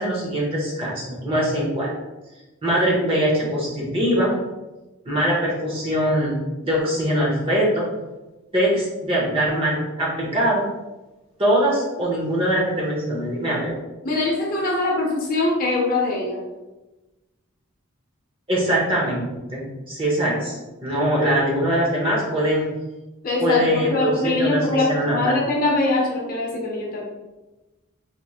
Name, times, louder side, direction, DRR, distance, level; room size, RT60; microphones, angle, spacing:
voice 1, 0.0-1.9 2.6-4.3 5.1-6.4 6.6-7.9 8.5-10.7 11.4-13.7 18.5-19.2 19.5-22.7 23.4-25.3, equal, 25° right, -4 dB, 0.8 m, -22 dB
voice 2, 14.0-16.4 23.2-27.0, left 2 dB, 40° left, -2 dB, 0.7 m, -22 dB
4.3 x 3.1 x 2.4 m, 1.1 s
head